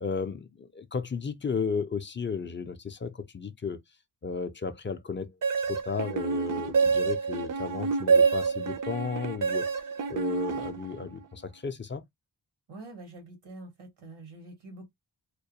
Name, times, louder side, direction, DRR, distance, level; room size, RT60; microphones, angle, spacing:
voice 1, 0.0-3.8 4.2-9.7 10.1-12.0, left 5 dB, 25° left, 0.4 m, -34 dB
sound 1, 5.4-11.2, right 5 dB, 45° right, 0.4 m, -27 dB
voice 2, 12.7-14.9, right 2 dB, 90° right, 0.9 m, -46 dB
2.2 x 2.2 x 2.7 m
cardioid pair, 45°, 47 cm